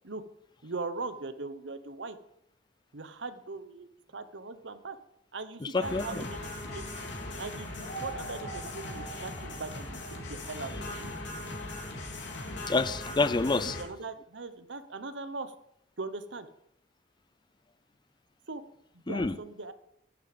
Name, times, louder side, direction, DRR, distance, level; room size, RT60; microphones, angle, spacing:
voice 1, 0.6-2.2 2.9-5.0 5.3-7.1 7.4-11.1 13.6-15.5 16.0-16.5 18.5-18.6 18.9-19.7, right 3 dB, 80° right, 1.1 m, -40 dB
voice 2, 5.6-6.3 12.6-13.8 19.1-19.3, left 3 dB, 25° left, 0.5 m, -28 dB
sound 1, 5.8-13.8, left 1 dB, 75° left, 3.2 m, -39 dB
11.0 x 11.0 x 5.2 m
head